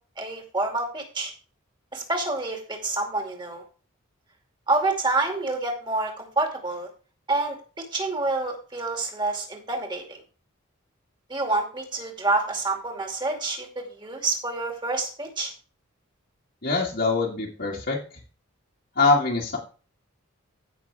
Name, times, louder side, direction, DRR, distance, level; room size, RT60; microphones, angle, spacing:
voice 1, 0.2-1.3 1.9-3.6 4.7-6.9 7.3-10.2 11.3-15.5, right 2 dB, 20° right, 2 dB, 2.4 m, -28 dB
voice 2, 16.6-18.0 19.0-19.6, left 3 dB, 50° left, -6 dB, 1.9 m, -23 dB
16.5 x 6.2 x 3.5 m, 0.38 s
head